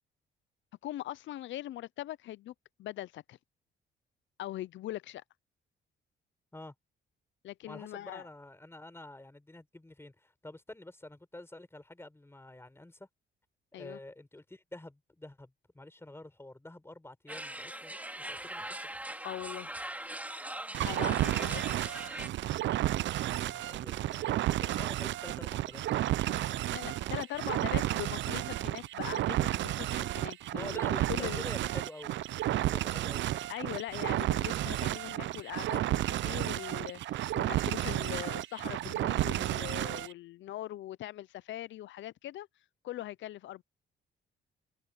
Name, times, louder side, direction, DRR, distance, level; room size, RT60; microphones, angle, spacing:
voice 1, 0.8-2.5 2.8-3.4 4.4-5.2 7.4-8.3 13.7-14.0 19.2-19.7 20.8-22.0 26.7-30.8 31.1-31.5 33.5-42.5 42.8-43.6, left 14 dB, 70° left, 0.6 m, -41 dB
voice 2, 7.7-13.1 13.7-19.0 23.3-26.6 30.5-33.5, left 2 dB, 10° left, 6.7 m, -48 dB
sound 1, 17.3-22.3, right 1 dB, 10° right, 2.3 m, -41 dB
sound 2, 20.7-40.1, right 14 dB, 70° right, 0.5 m, -32 dB
cardioid pair, 90°, 20 cm